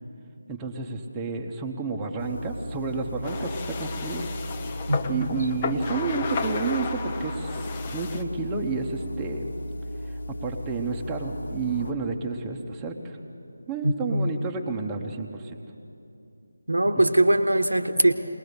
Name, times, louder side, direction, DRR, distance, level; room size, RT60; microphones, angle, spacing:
voice 1, 0.5-4.3 5.0-7.5 7.9-9.5 10.1-13.2 13.7-15.6, right 4 dB, 10° right, 0 dB, 1.2 m, -31 dB
sound 1, 2.2-11.9, equal, 60° left, 1.2 m, -35 dB
sound 2, 3.2-8.2, left 4 dB, 25° left, 0.9 m, -33 dB
voice 2, 4.9-5.3 13.8-14.3 16.7-18.1, right 1 dB, 80° right, 8 dB, 1.3 m, -22 dB
21.5 x 20.0 x 6.8 m, 2.7 s
figure-of-eight pair, 160°, 0 cm